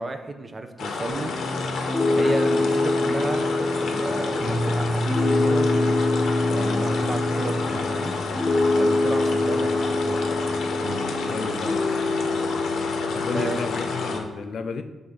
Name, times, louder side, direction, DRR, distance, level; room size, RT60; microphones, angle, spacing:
voice 1, 0.0-1.3 2.2-6.1 6.5-8.2 8.7-10.2 12.9-13.0 13.3-13.6, right 3 dB, 25° right, 7 dB, 0.5 m, -32 dB
sound 1, 0.8-14.2, left 4 dB, 75° left, 0.8 m, -30 dB
Piano, 1.1-14.2, left 2 dB, 5° left, 1.0 m, -25 dB
voice 2, 11.3-11.8 13.1-14.8, left 5 dB, 55° left, 9 dB, 0.3 m, -32 dB
5.5 x 3.4 x 5.0 m, 1.2 s
cardioid pair, 130°, 0 cm